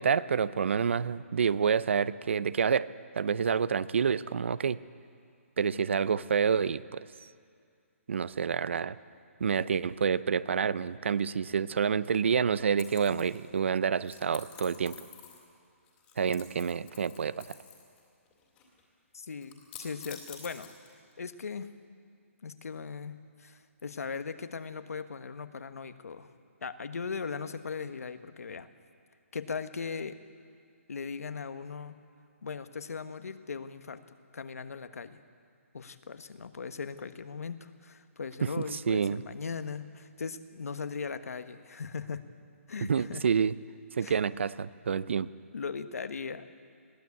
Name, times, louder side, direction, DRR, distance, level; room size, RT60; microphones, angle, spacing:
voice 1, 0.0-4.8 5.6-7.1 8.1-9.0 9.4-15.0 16.2-17.6 38.4-39.2 42.8-43.5 44.0-45.3, right 6 dB, 55° right, 18 dB, 0.6 m, -28 dB
sound 1, 12.8-13.6 14.0-15.6 15.8-18.0 18.2-18.8 19.4-21.1, left 8 dB, 10° left, 2.5 m, -49 dB
voice 2, 19.1-20.7 21.2-21.7 22.4-26.3 26.6-28.7 29.3-30.2 30.9-32.0 32.4-34.0 34.3-35.2 35.7-42.2 42.7-43.2 44.0-44.1 45.5-46.5, left 5 dB, 80° left, 10 dB, 1.3 m, -39 dB
21.5 x 15.5 x 8.5 m, 2.3 s
hypercardioid pair, 175°, 8 cm